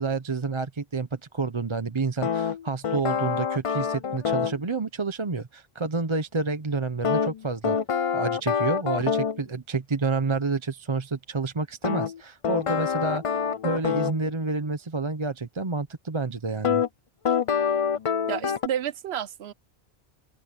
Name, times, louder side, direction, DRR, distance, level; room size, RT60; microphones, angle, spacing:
voice 1, 0.0-7.8 8.1-16.8, right 4 dB, 30° right, 0.8 m, -29 dB
sound 1, 2.2-4.6 7.0-9.4 11.8-14.2 16.6-16.9 17.2-18.7, left 7 dB, 40° left, 0.5 m, -26 dB
voice 2, 18.3-19.5, right 10 dB, 75° right, 1.0 m, -30 dB
open air
omnidirectional pair, 1.1 m